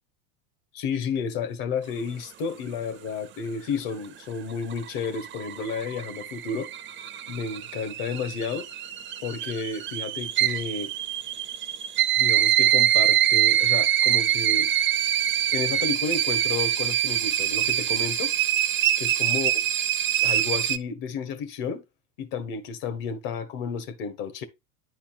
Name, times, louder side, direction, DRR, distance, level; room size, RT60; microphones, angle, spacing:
voice 1, 0.7-6.7 7.3-8.7 9.2-10.9 12.2-14.7 15.5-18.3 19.0-19.5 20.2-21.8 22.2-24.4, left 5 dB, 50° left, 1.8 m, -31 dB
sound 1, 4.5-20.8, right 12 dB, 25° right, 0.7 m, -24 dB
10.0 x 4.3 x 4.3 m
supercardioid pair, 115°, 43 cm